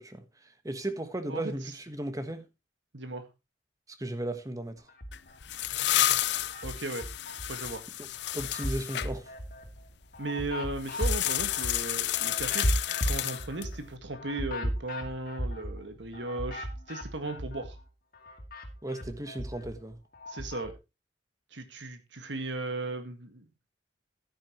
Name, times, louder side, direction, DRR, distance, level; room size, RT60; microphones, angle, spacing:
voice 1, 0.0-2.4 4.0-4.9 8.3-9.3 18.8-20.0, right 1 dB, 20° right, 1.3 m, -36 dB
voice 2, 2.9-3.2 6.6-7.1 7.5-7.8 10.2-12.7 13.0-17.8 20.3-20.7 21.5-23.4, right 2 dB, 80° right, 1.8 m, -36 dB
sound 1, 4.9-5.7 6.1-7.7 8.1-17.8 18.1-20.7, equal, 50° left, 2.5 m, -36 dB
sound 2, 5.1-9.1 10.8-13.8, left 13 dB, 65° left, 0.5 m, -31 dB
12.5 x 9.9 x 3.1 m
head